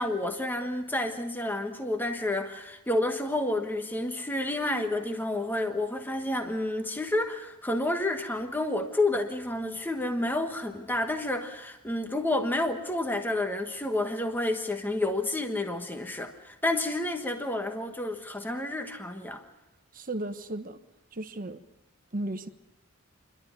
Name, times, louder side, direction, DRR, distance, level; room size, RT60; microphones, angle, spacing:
voice 1, 0.0-19.4, left 1 dB, 10° left, 1.3 m, -30 dB
voice 2, 19.9-20.8 21.1-21.6 22.1-22.5, right 1 dB, 40° right, 1.2 m, -34 dB
28.5 x 12.0 x 9.4 m
head